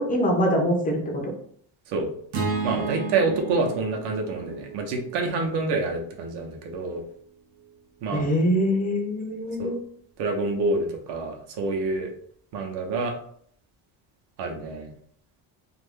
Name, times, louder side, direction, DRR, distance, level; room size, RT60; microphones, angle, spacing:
voice 1, 0.0-1.3 8.1-9.8, equal, 20° left, 1 dB, 0.3 m, -24 dB
sound 1, 2.3-6.6, right 4 dB, 85° right, 1.0 m, -33 dB
voice 2, 2.6-7.0 8.0-8.3 9.6-9.8 10.2-12.1 12.5-13.1 14.4-14.9, right 3 dB, 60° right, 3 dB, 0.7 m, -27 dB
2.6 x 2.4 x 3.5 m, 0.62 s
cardioid pair, 165°, 48 cm